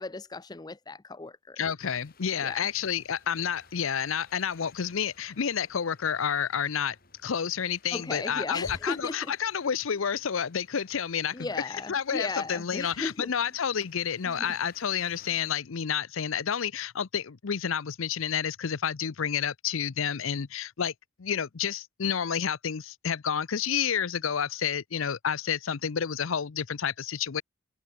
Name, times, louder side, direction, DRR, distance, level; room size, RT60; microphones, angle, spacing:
voice 1, 0.0-1.6 2.4-2.6 7.9-9.3 11.3-13.3 14.3-14.5, left 3 dB, 20° left, 0.5 m, -36 dB
voice 2, 1.6-7.0 7.2-20.9 21.2-27.4, left 7 dB, 80° left, 0.6 m, -30 dB
sound 1, 1.8-15.5, left 4 dB, 45° left, 7.9 m, -60 dB
head